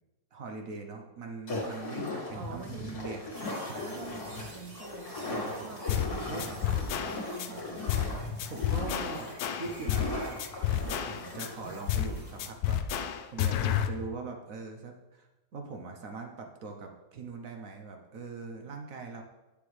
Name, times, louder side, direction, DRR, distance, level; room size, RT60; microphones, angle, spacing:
voice 1, 0.3-3.3 3.6-4.1 5.2-5.7 6.3-6.5 8.4-10.4 10.8-12.8 13.3-19.2, right 4 dB, 55° right, 3 dB, 1.1 m, -42 dB
sound 1, 1.5-12.5, left 2 dB, 55° left, 2.3 m, -38 dB
voice 2, 2.3-3.0 3.8-8.1, right 7 dB, 75° right, 5 dB, 0.7 m, -46 dB
sound 2, 3.3-12.4, right 2 dB, 40° right, 1.4 m, -54 dB
sound 3, 5.9-6.1 6.4-7.5 7.9-8.1 8.4-10.1 10.4-11.5 11.9-12.1 12.4-13.9, left 10 dB, 70° left, 0.9 m, -30 dB
9.0 x 6.9 x 3.3 m, 1.1 s
omnidirectional pair, 2.0 m